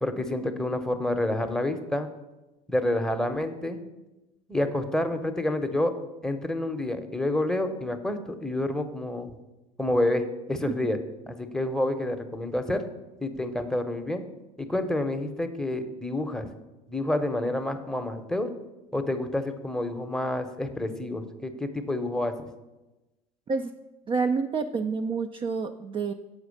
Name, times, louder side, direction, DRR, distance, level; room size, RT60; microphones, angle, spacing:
voice 1, 0.0-2.1 2.7-3.8 4.5-5.9 6.2-9.3 9.8-11.0 11.3-12.8 13.2-14.2 14.6-16.5 16.9-18.5 18.9-22.5, left 1 dB, 5° left, 6 dB, 0.8 m, -28 dB
voice 2, 24.1-26.1, right 4 dB, 25° right, 6 dB, 0.4 m, -28 dB
7.2 x 4.8 x 6.5 m, 1.1 s
hypercardioid pair, 75°, 20 cm